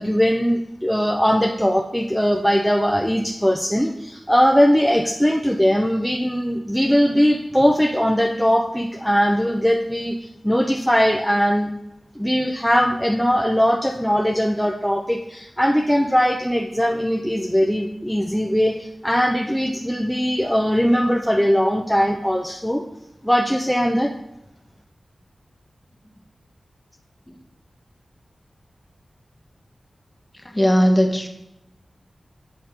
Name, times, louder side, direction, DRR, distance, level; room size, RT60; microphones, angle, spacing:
voice 1, 0.0-10.2 10.4-11.7 12.2-22.8 23.2-24.1, equal, ahead, 1 dB, 0.6 m, -20 dB
voice 2, 30.3-31.3, equal, 20° left, 4 dB, 1.2 m, -18 dB
7.9 x 4.2 x 5.0 m, 0.86 s
cardioid pair, 50°, 0 cm